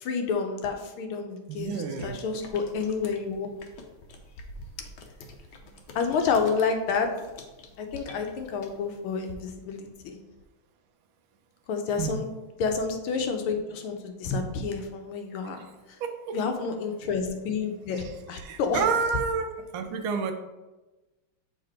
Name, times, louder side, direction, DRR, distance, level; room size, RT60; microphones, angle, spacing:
voice 1, 0.0-3.5 5.9-7.1 7.8-10.2 11.7-12.3 12.6-15.6 16.3-18.8, left 5 dB, 85° left, 5 dB, 1.6 m, -29 dB
voice 2, 1.5-2.2 12.0-12.2 15.6-15.7 16.0-16.4 18.3-20.3, right 5 dB, 75° right, 6 dB, 1.4 m, -29 dB
sound 1, 2.1-9.3, left 2 dB, 65° left, 1.2 m, -47 dB
6.7 x 3.4 x 4.4 m, 1.1 s
omnidirectional pair, 2.4 m